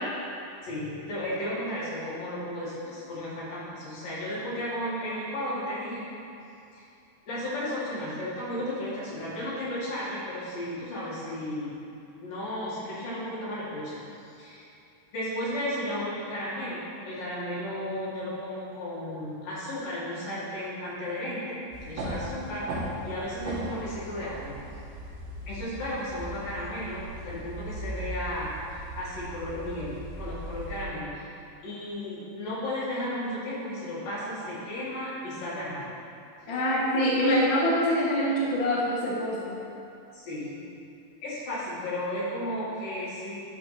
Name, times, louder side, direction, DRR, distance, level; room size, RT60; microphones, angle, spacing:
voice 1, 0.6-6.1 6.7-6.9 7.3-11.7 12.2-14.0 14.4-14.7 15.1-21.6 21.9-22.7 23.0-24.5 25.5-28.5 29.0-31.3 31.6-35.9 36.5-36.6 37.1-37.4 40.1-40.6 41.2-43.4, left 1 dB, 70° left, -9 dB, 3.9 m, -34 dB
sound 1, 21.7-30.9, right 1 dB, 85° right, 3.2 m, -38 dB
voice 2, 36.5-39.6, equal, 45° left, -7 dB, 1.7 m, -25 dB
13.0 x 4.8 x 4.2 m, 2.6 s
omnidirectional pair, 4.2 m